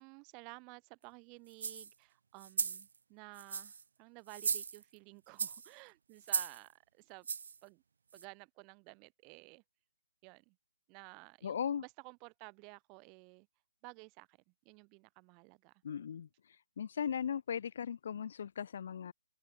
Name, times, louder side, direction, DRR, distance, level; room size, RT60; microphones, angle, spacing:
voice 1, 0.0-7.3 7.6-7.8 8.1-9.6 10.2-10.6 10.9-13.5 13.8-14.4 14.6-15.7, right 33 dB, 25° right, 3.3 m, -54 dB
sound 1, 1.5-1.9 2.4-2.9 3.3-3.8 4.3-5.0 5.4-5.7 6.2-6.6 7.2-7.6 8.2-8.3, right 6 dB, 65° right, 1.2 m, -36 dB
voice 2, 11.4-11.8 15.8-16.3 16.8-19.1, left 8 dB, 55° left, 3.2 m, -37 dB
open air
figure-of-eight pair, 140°, 0 cm